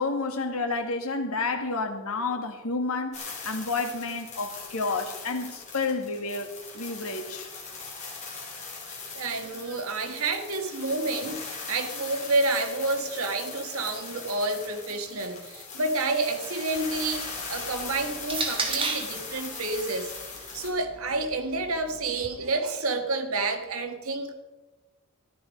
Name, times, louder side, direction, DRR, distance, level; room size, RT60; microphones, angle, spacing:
voice 1, 0.0-6.5 6.7-7.5, left 3 dB, 85° left, 1.8 m, -30 dB
sound 1, 3.1-20.7, left 4 dB, 35° left, 3.8 m, -40 dB
voice 2, 9.1-20.1 20.5-24.4, right 2 dB, 80° right, 1.6 m, -29 dB
sound 2, 16.8-19.2 20.2-22.3, right 4 dB, 25° right, 1.7 m, -35 dB
13.5 x 11.5 x 5.3 m
head